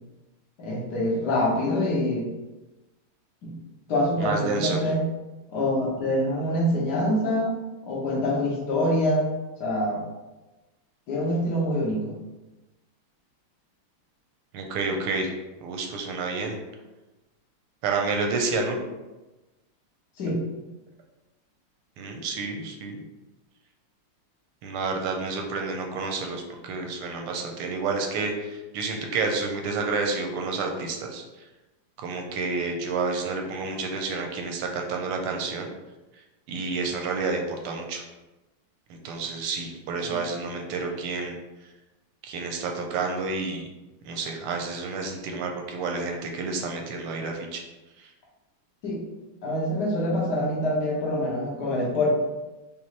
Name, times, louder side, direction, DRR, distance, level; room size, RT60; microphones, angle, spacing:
voice 1, 0.6-2.3 3.4-3.5 3.9-5.0 5.5-7.5 7.9-9.3 9.6-10.0 11.1-12.2 20.2-20.4 40.0-40.2 48.8-49.0 49.4-52.1, left 1 dB, 55° left, -5 dB, 1.6 m, -25 dB
voice 2, 4.2-4.8 14.5-15.3 15.6-16.6 17.8-18.9 22.0-23.0 24.6-31.2 32.0-35.7 36.5-38.0 39.0-41.4 42.2-43.7 44.1-47.6 48.0-48.1, right 4 dB, 85° right, 2 dB, 1.6 m, -29 dB
5.2 x 2.6 x 3.1 m, 1.1 s
omnidirectional pair, 2.4 m